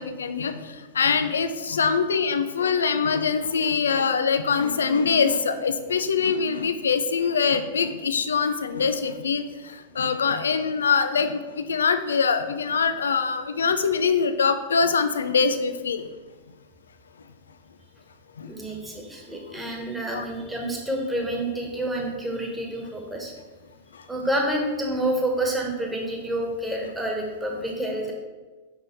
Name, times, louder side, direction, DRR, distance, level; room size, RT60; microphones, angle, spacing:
voice 1, 0.0-16.1 18.4-18.5 20.1-20.2 23.9-24.0, left 5 dB, 75° left, 10 dB, 0.4 m, -24 dB
voice 2, 18.5-23.3 24.1-28.1, right 1 dB, 5° right, 0 dB, 1.3 m, -28 dB
5.8 x 5.4 x 3.3 m, 1.3 s
figure-of-eight pair, 95°, 0 cm